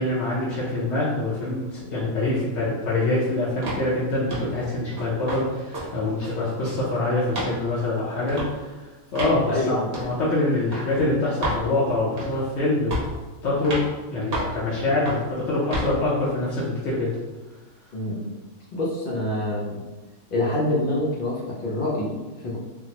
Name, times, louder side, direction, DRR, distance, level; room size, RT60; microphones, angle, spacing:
voice 1, 0.0-12.9 13.4-13.8 14.1-17.1, left 2 dB, 60° left, -8 dB, 0.8 m, -25 dB
sound 1, 3.6-3.9 4.3-4.5 5.0-5.4 5.7-5.9 6.2-6.8 7.3-7.5 8.3-8.5 9.1-9.4 9.9-10.1 10.7-10.8 11.4-11.6 12.2-12.5 12.9-13.2 13.6-13.9 14.3-14.6 15.1-15.3 15.7-15.9, right 1 dB, 50° right, 1.0 m, -29 dB
voice 2, 9.5-9.9 17.9-18.3 18.7-19.8 20.3-22.6, left 1 dB, 85° left, -5 dB, 0.4 m, -26 dB
3.8 x 2.0 x 2.8 m, 1.2 s
omnidirectional pair, 1.6 m